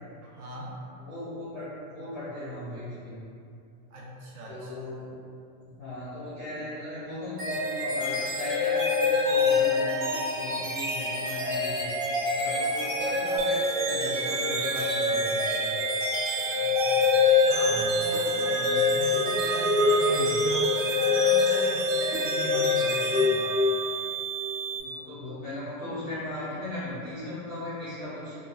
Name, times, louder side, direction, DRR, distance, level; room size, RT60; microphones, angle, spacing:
voice 1, 0.2-0.8 3.9-5.1 16.5-23.6, right 1 dB, 75° right, -5 dB, 0.9 m, -39 dB
voice 2, 1.0-3.2 4.5-5.1 5.6-9.0 9.3-11.9 12.4-15.7 17.3-17.8 18.5-18.9 20.1-20.4 24.8-28.4, left 1 dB, 15° left, -13 dB, 0.4 m, -37 dB
sound 1, 7.4-24.0, left 3 dB, 35° right, 0.7 m, -25 dB
sound 2, 13.4-24.8, right 9 dB, 90° right, 1.3 m, -34 dB
2.9 x 2.3 x 2.3 m, 2.5 s
supercardioid pair, 165°, 45 cm